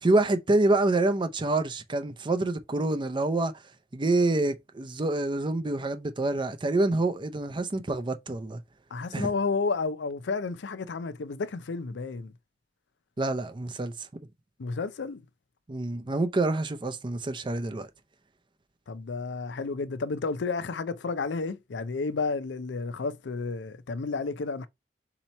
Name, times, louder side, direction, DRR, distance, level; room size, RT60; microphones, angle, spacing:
voice 1, 0.0-3.5 3.9-8.6 9.1-9.3 13.2-14.1 15.7-17.9, right 2 dB, 30° right, 0.5 m, -27 dB
voice 2, 8.9-12.3 14.6-15.2 18.9-24.7, left 4 dB, 85° left, 0.5 m, -31 dB
4.3 x 2.9 x 4.1 m
head